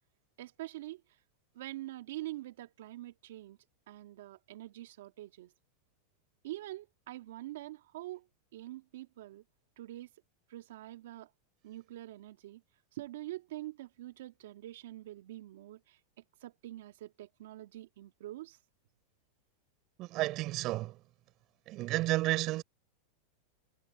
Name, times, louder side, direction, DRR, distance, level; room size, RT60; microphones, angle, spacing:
voice 1, 0.4-1.0 1.5-3.6 3.9-5.5 6.4-8.2 8.5-9.4 9.8-10.1 10.5-11.3 11.6-12.6 12.9-16.0 16.4-18.6, right 15 dB, 75° right, 2.3 m, -45 dB
voice 2, 20.0-21.0 21.7-22.6, right 18 dB, 40° right, 6.5 m, -32 dB
supercardioid pair, 140°, 0 cm